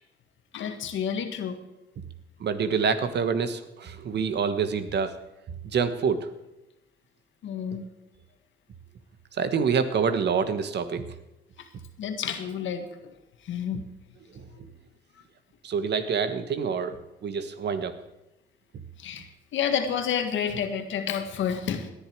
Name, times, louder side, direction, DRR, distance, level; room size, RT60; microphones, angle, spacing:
voice 1, 0.5-1.6 7.4-7.9 11.6-11.7 12.0-12.9 13.4-13.9 19.0-21.9, left 8 dB, 75° left, 7 dB, 1.7 m, -30 dB
voice 2, 2.4-5.1 5.6-6.3 9.3-11.0 14.3-14.7 15.6-17.0 17.2-18.0, right 6 dB, 60° right, 10 dB, 1.3 m, -27 dB
18.5 x 10.5 x 4.7 m, 0.96 s
cardioid pair, 90°, 20 cm